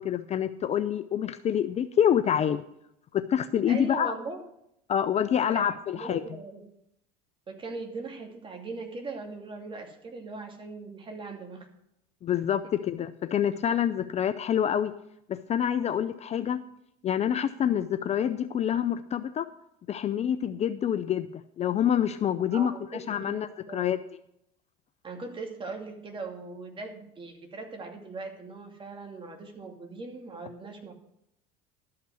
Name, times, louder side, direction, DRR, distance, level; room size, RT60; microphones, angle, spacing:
voice 1, 0.0-2.6 3.1-4.1 4.9-6.2 12.2-14.9 15.3-16.6 17.0-19.5 19.9-24.0, left 9 dB, 35° left, 12 dB, 0.5 m, -27 dB
voice 2, 3.7-4.4 5.5-6.6 7.5-11.7 22.5-24.0 25.0-30.9, right 3 dB, 25° right, 3 dB, 2.5 m, -40 dB
12.5 x 5.8 x 7.7 m, 0.77 s
supercardioid pair, 105°, 20 cm